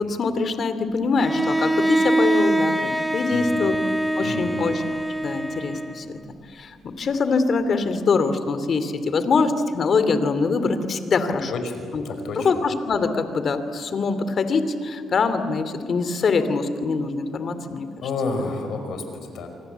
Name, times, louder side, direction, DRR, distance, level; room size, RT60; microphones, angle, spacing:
voice 1, 0.0-3.8 4.2-4.8 5.2-6.2 6.5-11.5 11.9-12.0 12.4-17.9 18.4-18.5, left 4 dB, 50° left, 10 dB, 2.7 m, -23 dB
Bowed string instrument, 1.2-6.2, right 1 dB, ahead, 1.7 m, -23 dB
voice 2, 3.3-3.7 4.2-4.6 11.5-11.7 12.1-12.5 18.0-19.5, left 3 dB, 75° left, 6 dB, 5.3 m, -30 dB
28.0 x 24.0 x 8.1 m, 2.3 s
cardioid pair, 90°, 0 cm